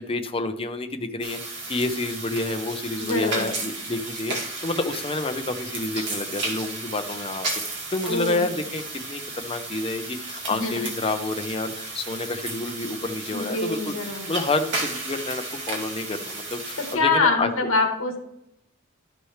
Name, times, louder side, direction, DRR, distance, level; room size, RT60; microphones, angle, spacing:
voice 1, 0.0-1.4 1.7-17.5, left 2 dB, 25° left, 6 dB, 0.8 m, -29 dB
sound 1, 1.2-17.0, right 2 dB, 60° right, 2.3 m, -34 dB
voice 2, 3.0-3.5 8.1-8.5 10.5-10.9 13.3-14.3 16.8-18.2, left 3 dB, 70° left, 3 dB, 2.0 m, -25 dB
12.5 x 6.2 x 3.2 m, 0.78 s
head